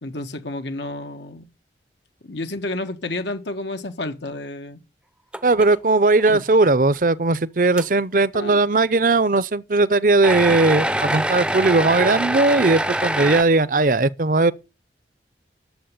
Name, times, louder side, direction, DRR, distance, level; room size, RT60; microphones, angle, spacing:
voice 1, 0.0-1.5 2.2-4.8 6.3-6.4 8.3-8.6, left 2 dB, 80° left, 1.5 m, -30 dB
sound 1, 5.3-5.8 6.2-6.3 7.0-7.1 7.8-7.9 10.2-13.4, right 1 dB, 5° right, 0.6 m, -24 dB
voice 2, 5.4-14.5, right 3 dB, 50° right, 0.6 m, -18 dB
10.0 x 7.4 x 8.7 m
head